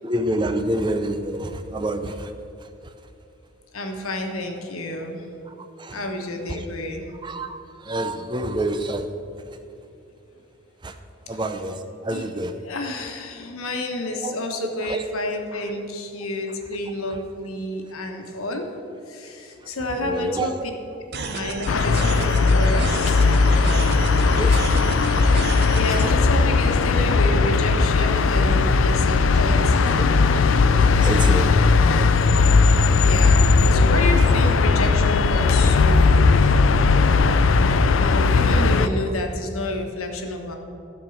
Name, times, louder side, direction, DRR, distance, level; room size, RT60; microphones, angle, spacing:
voice 1, 0.0-2.3 5.8-6.0 6.5-6.6 7.2-7.6 7.9-9.1 10.8-10.9 11.3-11.8 12.0-12.5 14.2-14.3 14.9-15.0 20.0-20.5 24.4-24.5 25.4-25.5 29.8-29.9 30.3-30.4 30.7-32.0, right 1 dB, 20° right, 8 dB, 0.5 m, -27 dB
voice 2, 3.7-5.2 5.9-7.1 12.1-12.3 12.6-18.7 19.1-20.7 21.3-23.4 25.8-30.2 33.0-36.5 38.0-40.6, left 1 dB, 90° left, 4 dB, 1.2 m, -30 dB
sound 1, 21.1-26.1, right 3 dB, 50° right, 0.8 m, -31 dB
sound 2, 21.7-38.9, left 4 dB, 65° left, 0.4 m, -17 dB
13.0 x 4.5 x 7.1 m, 2.7 s
head